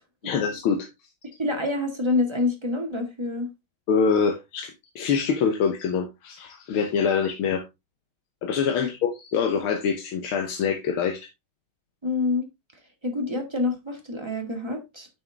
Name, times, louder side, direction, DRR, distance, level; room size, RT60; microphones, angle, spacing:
voice 1, 0.2-0.9 3.9-7.6 8.4-11.2, left 6 dB, 85° left, 1.9 m, -25 dB
voice 2, 1.4-3.5 8.8-8.9 12.0-12.5 13.0-15.1, left 3 dB, 15° right, 1.7 m, -27 dB
9.0 x 6.3 x 3.4 m
omnidirectional pair, 2.3 m